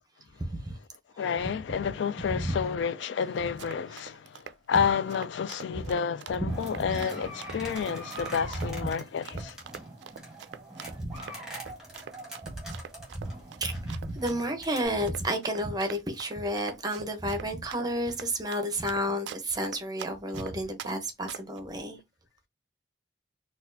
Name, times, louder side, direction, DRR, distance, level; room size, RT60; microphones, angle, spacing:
voice 1, 0.4-0.8 1.1-1.2 2.3-2.6 5.7-5.9 6.4-7.0 8.6-8.7 9.3-9.4 11.0-11.2 12.4-12.8 13.1-13.3 13.6-22.0, right 1 dB, 20° right, 0.7 m, -31 dB
voice 2, 1.2-9.6, left 6 dB, 80° left, 0.3 m, -30 dB
Run, 3.4-20.9 21.3-21.6, right 7 dB, 75° right, 0.3 m, -44 dB
sound 1, 6.5-14.9, right 1 dB, 5° right, 1.6 m, -43 dB
4.1 x 2.4 x 2.5 m
head